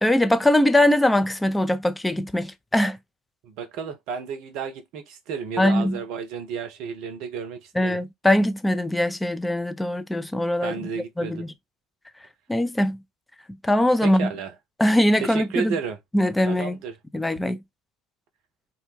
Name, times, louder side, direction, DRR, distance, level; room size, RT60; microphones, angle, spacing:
voice 1, 0.0-3.0 5.6-6.0 7.8-10.7 11.2-11.5 12.5-13.0 13.6-14.3 14.8-15.7 16.1-16.8 17.1-17.6, left 1 dB, 10° left, 0.4 m, -21 dB
voice 2, 3.4-8.0 10.6-11.4 14.0-14.5 15.2-16.0 16.5-17.0, right 6 dB, 55° right, 0.6 m, -32 dB
2.3 x 2.1 x 3.1 m
figure-of-eight pair, 65°, 0 cm